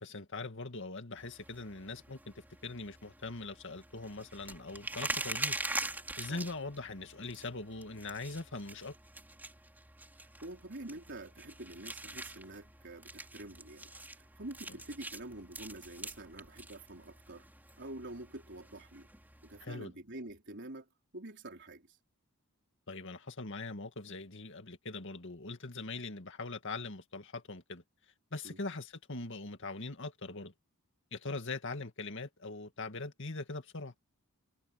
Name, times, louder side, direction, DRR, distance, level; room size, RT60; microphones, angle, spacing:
voice 1, 0.0-5.6 6.2-8.9 14.7-14.8 19.6-19.9 22.9-27.8 28.3-30.5 31.1-33.9, left 3 dB, 55° left, 2.1 m, -42 dB
sound 1, 1.2-19.7, right 2 dB, 10° right, 3.7 m, -44 dB
voice 2, 10.2-17.5 17.8-19.1 19.4-20.9 21.1-21.9 28.4-28.6, right 1 dB, 55° right, 4.1 m, -47 dB
head